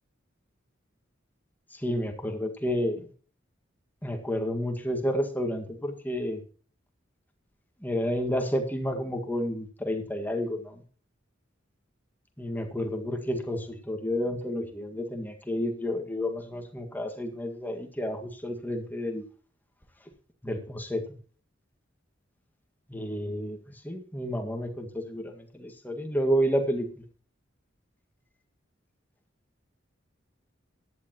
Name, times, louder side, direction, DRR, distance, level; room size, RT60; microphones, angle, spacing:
voice 1, 1.7-3.1 4.0-6.4 7.8-10.8 12.4-19.2 20.4-21.0 22.9-27.0, equal, 10° left, 3 dB, 1.8 m, -30 dB
17.0 x 11.5 x 3.0 m, 0.41 s
head